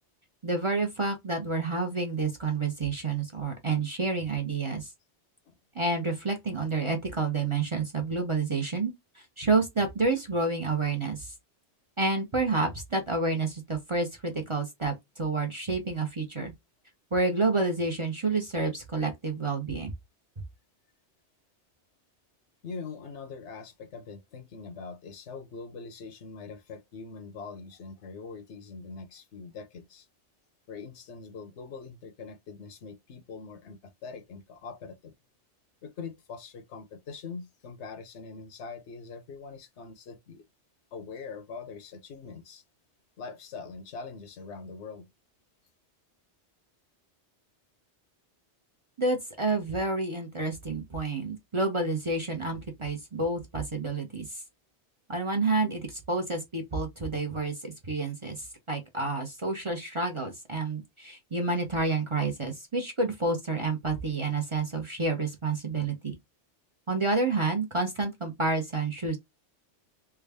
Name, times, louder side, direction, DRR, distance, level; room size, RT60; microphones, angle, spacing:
voice 1, 0.4-4.9 5.7-11.3 12.0-16.5 17.1-19.9 49.0-54.4 55.1-66.2 66.9-69.2, right 3 dB, 30° right, 0.7 m, -29 dB
voice 2, 22.6-30.1 30.7-35.1 35.8-40.4 40.9-42.6 43.2-45.1, left 4 dB, 75° left, 1.1 m, -43 dB
3.5 x 2.3 x 3.3 m
omnidirectional pair, 1.2 m